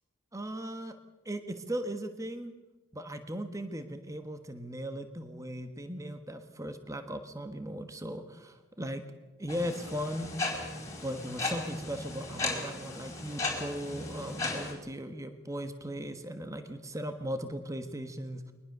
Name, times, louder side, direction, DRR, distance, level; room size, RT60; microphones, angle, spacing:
voice 1, 0.3-0.9 1.2-2.5 2.9-9.0 9.4-10.3 11.0-18.5, equal, 15° right, 8 dB, 1.3 m, -38 dB
sound 1, 9.5-14.7, left 2 dB, 15° left, 4.2 m, -36 dB
22.0 x 19.5 x 6.7 m, 1.2 s
head